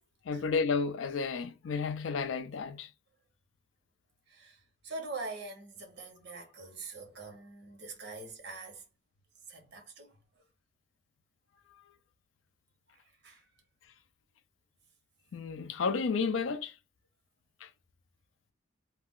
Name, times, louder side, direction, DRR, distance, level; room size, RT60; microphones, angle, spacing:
voice 1, 0.3-2.9 15.3-16.7 17.6-17.7, left 5 dB, 80° left, 0.4 m, -32 dB
voice 2, 4.3-8.9 9.5-10.4 12.9-13.5, right 3 dB, 60° right, 0.9 m, -44 dB
2.3 x 2.2 x 3.5 m
head